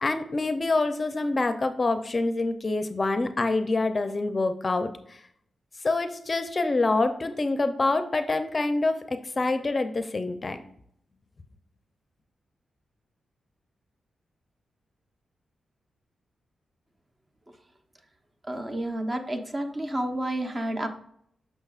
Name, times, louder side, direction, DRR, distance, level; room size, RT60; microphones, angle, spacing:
voice 1, 0.0-5.2 5.8-10.6, left 3 dB, 35° left, 8 dB, 0.5 m, -26 dB
voice 2, 18.5-20.9, right 1 dB, 30° right, 5 dB, 0.8 m, -30 dB
6.7 x 6.2 x 2.4 m, 0.68 s
cardioid pair, 85°, 0 cm